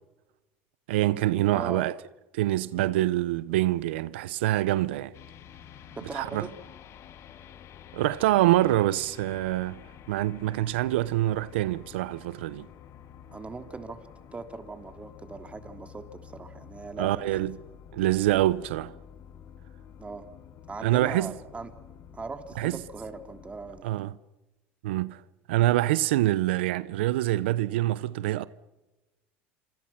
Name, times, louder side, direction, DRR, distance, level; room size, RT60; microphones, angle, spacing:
voice 1, 0.9-2.0 2.3-5.1 6.1-6.5 7.9-9.8 10.1-12.7 17.0-17.5 17.9-18.9 20.8-21.3 22.6-22.8 23.8-24.2 24.8-25.2 25.5-28.5, right 15 dB, 90° right, 0.8 m, -25 dB
voice 2, 1.5-1.9 6.0-6.6 13.3-14.1 14.3-17.5 20.0-20.2 20.7-21.7 22.1-23.9, right 4 dB, 20° right, 3.2 m, -39 dB
sound 1, 5.1-23.8, left 8 dB, 50° left, 1.8 m, -49 dB
27.5 x 26.0 x 6.0 m
supercardioid pair, 95°, 6 cm